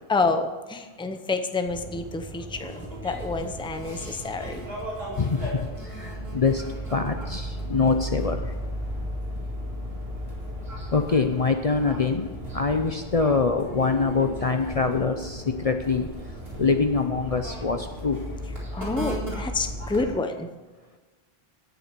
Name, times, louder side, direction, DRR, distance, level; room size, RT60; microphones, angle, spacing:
voice 1, 0.1-4.6 18.7-20.5, left 3 dB, 5° left, 7 dB, 0.7 m, -28 dB
sound 1, 1.6-20.1, equal, 75° right, 4.6 m, -35 dB
voice 2, 5.2-5.5 6.0-6.6 6.9-8.4 10.9-12.3 12.5-16.1 16.6-18.2, left 4 dB, 40° left, 6 dB, 0.7 m, -24 dB
17.5 x 6.9 x 4.5 m, 1.3 s
omnidirectional pair, 1.0 m